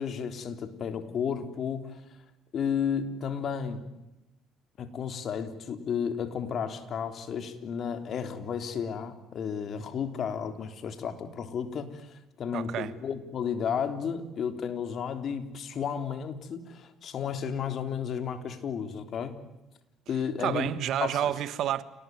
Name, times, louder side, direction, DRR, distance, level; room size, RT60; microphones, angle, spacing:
voice 1, 0.0-2.0 2.5-3.9 4.8-19.4 20.1-20.7 21.0-21.3, left 7 dB, 55° left, 3.5 m, -33 dB
voice 2, 12.5-12.9 20.4-21.8, right 11 dB, 65° right, 1.5 m, -29 dB
29.0 x 19.5 x 9.4 m
supercardioid pair, 75°, 0 cm